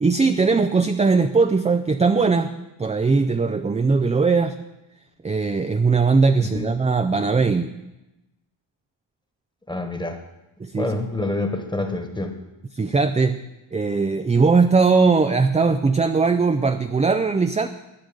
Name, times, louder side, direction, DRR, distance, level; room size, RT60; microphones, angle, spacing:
voice 1, 0.0-2.5 2.8-4.6 5.2-7.7 10.6-10.9 12.7-13.4 13.7-17.7, right 4 dB, 15° right, 8 dB, 0.3 m, -19 dB
voice 2, 6.4-6.7 9.7-10.2 10.8-12.3, left 2 dB, 10° left, 6 dB, 1.3 m, -27 dB
12.5 x 6.5 x 9.7 m, 0.97 s
wide cardioid pair, 155°, 48 cm